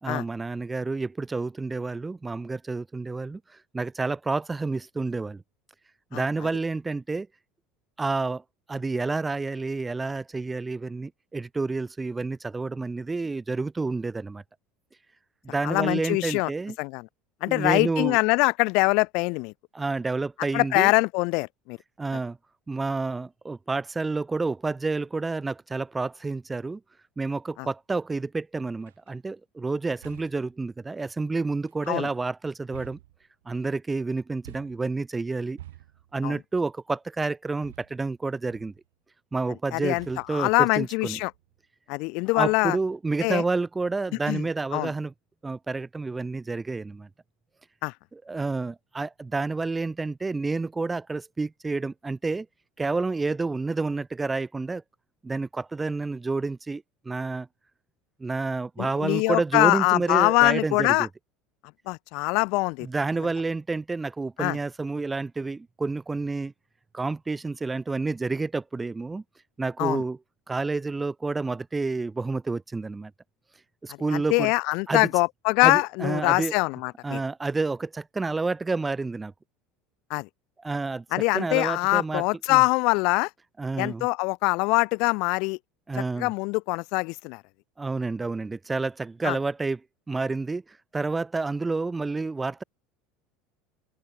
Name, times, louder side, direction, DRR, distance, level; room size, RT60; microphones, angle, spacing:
voice 1, 0.0-3.4 3.7-5.4 6.1-7.3 8.0-8.4 8.7-14.4 15.4-16.8 17.5-18.2 19.7-20.9 22.0-22.4 22.7-26.8 27.2-33.0 33.5-35.6 36.1-38.7 39.3-41.2 42.3-45.1 45.4-47.1 48.1-52.5 52.8-54.8 55.2-57.5 58.2-61.1 62.8-66.5 66.9-69.2 69.6-70.2 70.5-73.1 73.8-74.5 74.9-75.1 75.6-76.5 77.0-79.3 80.6-81.0 81.3-82.2 82.5-82.6 83.6-84.1 85.9-86.3 87.8-89.8 90.1-90.6 90.9-92.6, right 3 dB, 15° right, 2.3 m, -29 dB
voice 2, 15.6-16.5 16.8-17.1 17.4-19.5 20.5-21.8 27.6-27.7 31.9-32.1 36.2-36.4 39.7-40.0 40.3-41.3 41.9-42.8 43.2-43.4 44.3-44.4 44.7-44.9 47.8-47.9 58.8-61.1 61.9-62.9 64.4-64.6 69.8-70.0 73.9-77.2 80.1-80.3 81.1-83.3 83.8-85.6 86.2-87.4 89.2-89.4, left 28 dB, 65° left, 1.5 m, -23 dB
sound 1, 28.8-29.1 30.0-30.5 31.7-32.2 32.7-33.6 34.4-35.0 35.6-36.2 37.6-38.2 38.5-38.9 40.0-40.5 41.1-41.7, right 14 dB, 85° right, 3.5 m, -49 dB
open air
hypercardioid pair, 85°, 0 cm